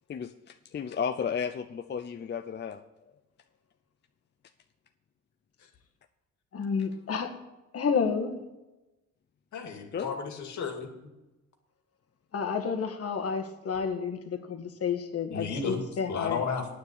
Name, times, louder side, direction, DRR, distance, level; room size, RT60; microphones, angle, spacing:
voice 1, 0.1-2.8 9.9-10.2, left 7 dB, 35° left, 8 dB, 0.6 m, -33 dB
voice 2, 6.5-7.3 7.7-8.3 12.3-16.4, left 6 dB, 50° left, 6 dB, 1.6 m, -30 dB
voice 3, 9.5-11.1 15.3-15.8 16.1-16.7, left 5 dB, 70° left, 4 dB, 2.2 m, -33 dB
9.5 x 6.8 x 8.8 m, 1.0 s
cardioid pair, 90°, 30 cm